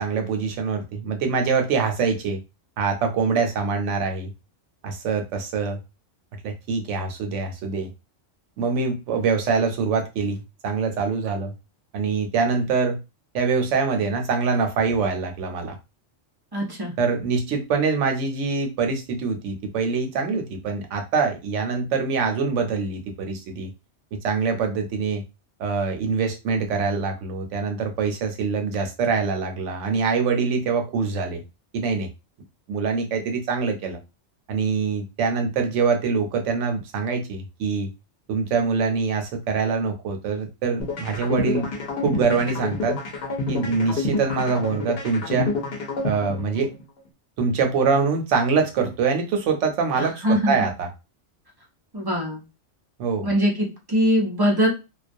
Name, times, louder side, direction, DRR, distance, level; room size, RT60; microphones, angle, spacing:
voice 1, 0.0-2.4 2.8-4.3 4.8-5.8 6.4-7.9 8.6-10.4 10.6-11.5 11.9-13.0 13.3-15.7 17.0-23.7 24.2-25.2 25.6-31.4 31.7-32.1 32.7-34.0 34.5-37.9 38.3-41.7 42.0-43.0 43.5-45.5 46.0-46.7 47.4-50.9 53.0-53.3, right 5 dB, 75° right, 5 dB, 0.9 m, -24 dB
voice 2, 16.5-16.9 50.0-50.7 51.9-52.4 53.2-54.7, equal, 35° right, -2 dB, 0.4 m, -22 dB
sound 1, 40.8-46.8, left 3 dB, 60° left, 0.8 m, -28 dB
2.3 x 2.2 x 2.5 m, 0.27 s
omnidirectional pair, 1.3 m